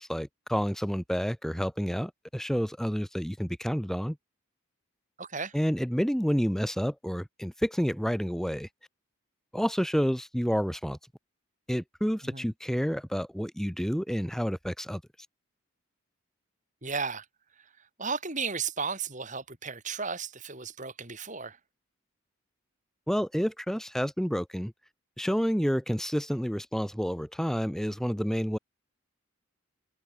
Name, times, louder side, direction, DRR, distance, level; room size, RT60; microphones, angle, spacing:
voice 1, 0.0-4.2 5.5-8.7 9.5-11.0 11.7-15.0 23.1-24.7 25.2-28.6, equal, ahead, 4.5 m, -29 dB
voice 2, 5.2-5.6 12.2-12.5 16.8-17.3 18.0-21.6, right 5 dB, 35° right, 5.2 m, -34 dB
head